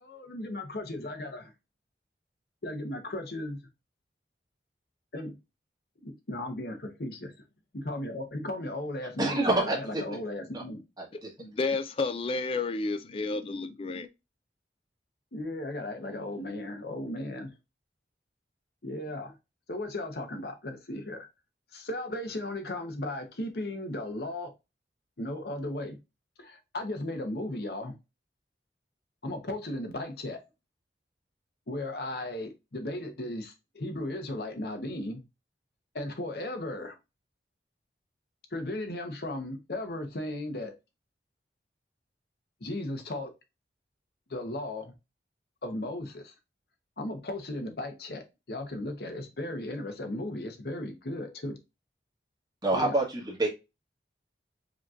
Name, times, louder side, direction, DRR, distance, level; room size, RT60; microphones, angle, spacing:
voice 1, 0.0-1.5 2.6-3.6 5.1-5.4 6.0-7.3 7.7-10.8 15.3-17.5 18.8-19.3 19.7-21.3 21.7-24.5 25.2-26.0 26.4-27.9 29.2-30.4 31.7-35.2 35.9-36.9 38.5-40.7 42.6-43.3 44.3-44.9 45.6-46.3 47.0-51.6 52.7-53.0, left 1 dB, 60° left, 0.9 m, -36 dB
voice 2, 9.2-10.2 10.5-10.6 11.0-11.3 52.6-53.5, right 2 dB, 20° right, 1.3 m, -27 dB
voice 3, 11.4-14.1, left 3 dB, 30° left, 0.4 m, -31 dB
5.0 x 2.9 x 2.4 m
head